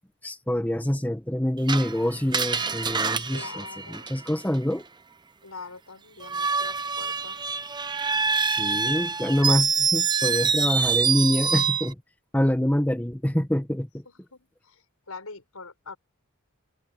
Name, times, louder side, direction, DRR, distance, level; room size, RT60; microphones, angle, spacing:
voice 1, 0.2-3.6 3.9-4.9 8.5-11.9 12.3-14.0, equal, 10° left, 1.1 m, -26 dB
Screech, 1.7-4.6 6.2-11.9, right 5 dB, 20° right, 0.8 m, -26 dB
voice 2, 3.3-4.1 5.4-7.5 14.1-16.0, left 4 dB, 90° left, 6.1 m, -44 dB
head